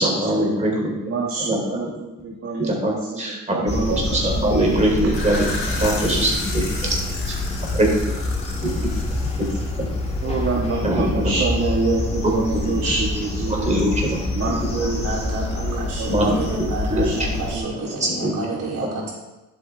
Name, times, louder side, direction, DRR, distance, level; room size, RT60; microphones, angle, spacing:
voice 1, 0.0-1.1 1.5-1.8 2.6-7.0 7.7-7.9 10.8-11.3 12.5-12.6 13.5-14.2 16.1-16.4 16.9-17.1 18.0-18.3, right 1 dB, 25° right, -2 dB, 3.5 m, -22 dB
voice 2, 1.0-3.2 3.5-4.8 5.0-5.3 10.2-13.8 14.3-16.5 17.0-17.7 18.2-18.3 18.8-18.9, right 3 dB, 50° right, -2 dB, 1.9 m, -27 dB
sound 1, 3.7-17.6, left 2 dB, 20° left, 1.8 m, -27 dB
sound 2, 5.0-10.6, left 3 dB, 40° left, 3.3 m, -34 dB
voice 3, 14.8-19.1, right 2 dB, 80° right, -5 dB, 3.6 m, -30 dB
10.5 x 8.2 x 3.6 m, 1.1 s
cardioid pair, 90°, 30 cm